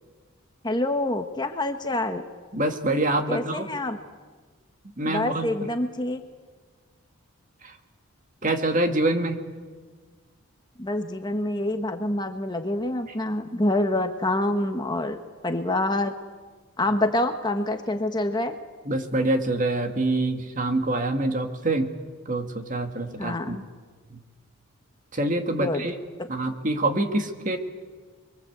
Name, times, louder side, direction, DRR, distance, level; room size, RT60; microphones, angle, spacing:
voice 1, 0.6-2.2 3.3-4.0 5.0-6.2 10.8-15.2 15.4-16.1 16.8-18.5 23.2-23.6 25.6-25.8, left 1 dB, 20° left, 6 dB, 1.2 m, -26 dB
voice 2, 2.5-3.7 5.0-5.5 8.4-9.4 18.9-21.9 22.3-23.6 24.1-24.2 25.1-25.9 26.3-27.6, right 2 dB, 35° right, 6 dB, 2.1 m, -25 dB
29.5 x 23.0 x 8.2 m, 1.5 s
head